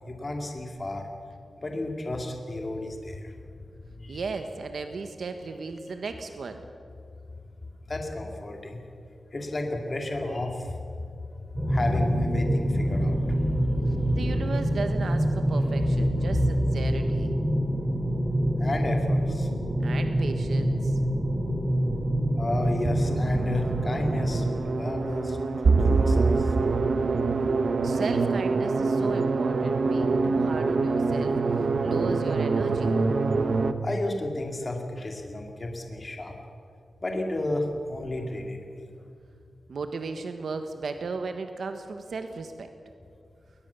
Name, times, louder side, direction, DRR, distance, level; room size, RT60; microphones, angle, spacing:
voice 1, 0.0-1.1 1.6-3.3 4.0-4.2 7.9-8.8 9.3-11.0 11.6-14.5 16.0-16.4 18.6-19.5 22.3-25.4 25.9-26.5 33.8-36.3 37.0-38.9, left 2 dB, 30° left, 3 dB, 2.5 m, -32 dB
voice 2, 4.1-6.7 13.9-17.3 19.8-21.0 27.8-33.0 39.7-42.7, right 4 dB, 75° right, 7 dB, 1.3 m, -35 dB
sound 1, 11.5-24.5, right 1 dB, 20° right, 3.6 m, -26 dB
sound 2, 22.8-33.7, right 4 dB, 55° right, 1.0 m, -25 dB
21.5 x 20.0 x 7.0 m, 2.4 s
wide cardioid pair, 135°, 0 cm